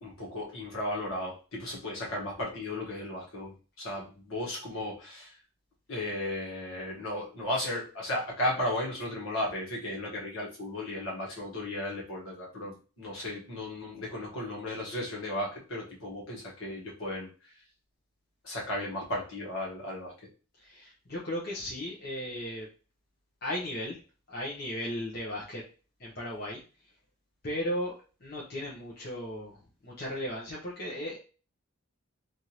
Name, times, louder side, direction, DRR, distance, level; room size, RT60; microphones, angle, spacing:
voice 1, 0.0-5.3 5.9-17.5 18.4-20.1, left 1 dB, 70° left, -4 dB, 1.4 m, -35 dB
voice 2, 20.6-22.7 23.4-24.0 24.3-25.6 26.0-26.6 27.4-27.9 28.2-29.6 29.8-31.2, equal, 45° left, -5 dB, 0.8 m, -36 dB
3.5 x 2.6 x 2.9 m, 0.36 s
head